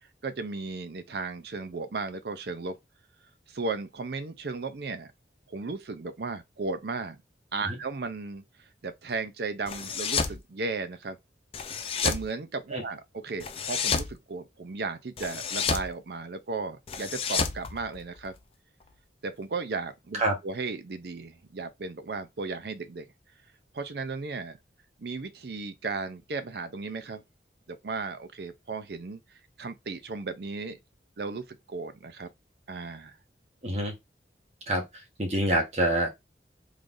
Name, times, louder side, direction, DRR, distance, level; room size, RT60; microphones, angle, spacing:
voice 1, 0.2-2.8 3.5-5.1 5.5-7.2 7.5-8.4 8.8-11.2 12.0-18.3 19.2-23.0 23.7-24.6 25.0-27.2 27.7-29.2 29.6-30.8 31.2-32.3 32.7-33.1, right 4 dB, 65° right, 0.6 m, -35 dB
sound 1, 9.7-10.4 11.5-12.3 13.4-14.1 15.2-15.9 16.9-18.4, left 5 dB, 30° left, 0.4 m, -30 dB
voice 2, 33.6-33.9 34.7-36.1, right 1 dB, 35° right, 1.1 m, -27 dB
3.7 x 3.3 x 2.6 m
head